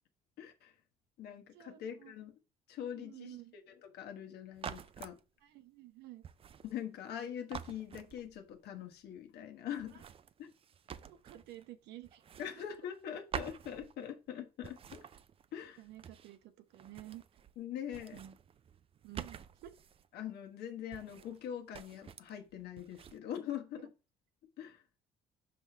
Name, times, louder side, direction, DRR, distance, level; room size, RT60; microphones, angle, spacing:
voice 1, 0.4-0.7 1.2-2.3 2.7-5.2 6.6-10.0 10.4-10.5 12.4-15.0 15.5-15.8 17.6-18.2 20.1-23.9 24.6-24.8, left 9 dB, 75° left, 1.1 m, -43 dB
voice 2, 1.5-2.1 2.8-3.6 5.4-6.2 9.9-10.0 11.1-12.2 12.6-12.7 15.8-17.2 18.1-18.4 19.0-19.7 23.8-23.9, right 14 dB, 85° right, 0.8 m, -51 dB
sound 1, 4.5-5.2 6.2-7.2 7.5-8.6 9.8-11.7 12.0-13.0 13.3-14.3 14.6-16.4 16.7-17.6 17.9-20.1 20.9-21.4 21.7-22.4 22.8-23.2, right 8 dB, 35° right, 0.4 m, -48 dB
5.9 x 5.3 x 3.3 m
cardioid pair, 110°, 17 cm